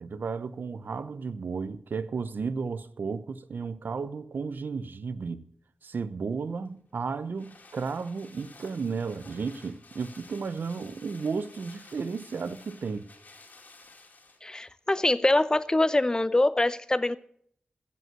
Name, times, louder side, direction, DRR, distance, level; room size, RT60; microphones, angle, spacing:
voice 1, 0.0-5.4 5.8-13.1, right 5 dB, 75° right, 0.7 m, -33 dB
sound 1, 6.6-14.7 15.0-15.1, left 3 dB, 65° left, 2.4 m, -53 dB
voice 2, 14.4-17.2, left 2 dB, 20° left, 0.7 m, -24 dB
15.5 x 5.5 x 7.4 m
wide cardioid pair, 80°, 3 cm